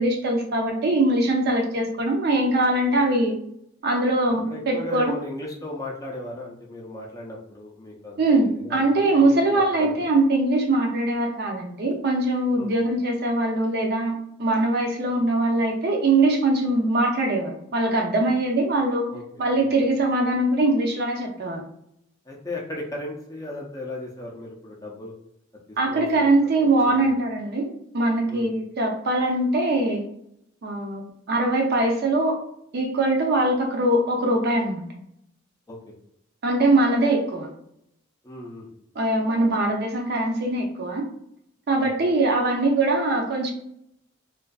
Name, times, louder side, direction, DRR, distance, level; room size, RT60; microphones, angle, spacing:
voice 1, 0.0-3.3 3.8-5.1 8.2-19.1 19.4-21.6 25.8-30.0 30.6-32.4 32.7-34.9 36.4-37.5 39.0-41.0 41.7-43.5, right 2 dB, 55° right, 2 dB, 0.5 m, -22 dB
voice 2, 4.5-10.1 12.6-12.7 19.1-19.7 22.3-25.1 25.9-26.3 26.8-27.1 28.3-28.5 35.7-35.9 38.2-38.7 41.8-41.9, left 1 dB, 15° left, -2 dB, 0.5 m, -36 dB
2.5 x 2.3 x 2.3 m, 0.74 s
head